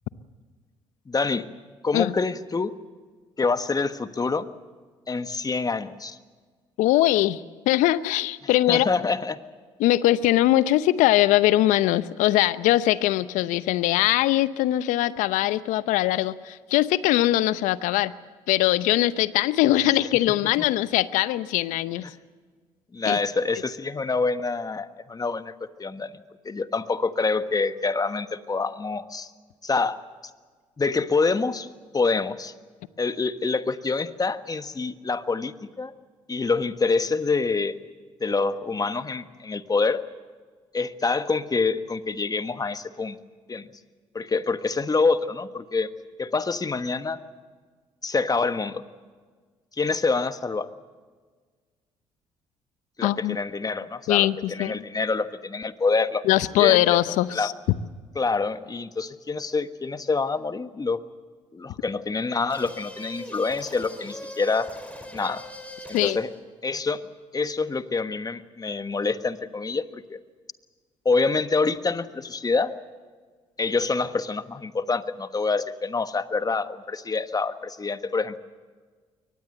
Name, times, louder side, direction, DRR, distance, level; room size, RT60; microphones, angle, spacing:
voice 1, 1.1-1.5 1.8-2.7 3.4-4.5 5.1-6.2 8.7-9.4 22.0-22.1 22.9-29.3 29.6-30.0 30.8-31.7 31.9-32.5 33.0-35.9 36.3-37.8 38.2-40.0 40.7-43.2 43.5-43.7 44.1-45.9 46.2-47.2 48.0-48.8 49.8-50.7 53.0-56.2 56.6-57.0 57.3-57.5 58.1-61.0 61.5-64.7 65.1-65.4 65.9-66.3 66.6-67.0 67.3-70.2 71.0-72.7 73.6-78.4, left 4 dB, 30° left, 11 dB, 1.4 m, -26 dB
voice 2, 6.8-8.9 9.8-18.1 18.5-22.0 23.1-23.2 53.0-53.4 54.1-54.8 56.2-57.5 65.9-66.2, left 15 dB, 75° left, 16 dB, 0.8 m, -21 dB
sound 1, 62.5-66.4, left 1 dB, 10° left, 5.2 m, -41 dB
23.0 x 19.5 x 7.9 m, 1.5 s
hypercardioid pair, 55°, 13 cm